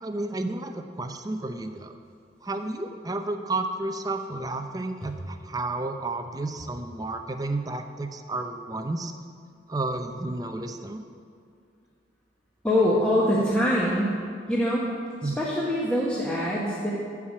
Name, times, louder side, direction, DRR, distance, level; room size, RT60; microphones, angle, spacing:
voice 1, 0.0-1.9 2.4-9.1 9.7-11.0 15.2-15.4, right 2 dB, 20° right, 6 dB, 0.5 m, -31 dB
voice 2, 12.6-14.2 14.5-14.8 15.2-16.9, left 1 dB, 5° left, -6 dB, 1.1 m, -24 dB
13.0 x 4.9 x 8.5 m, 2.3 s
head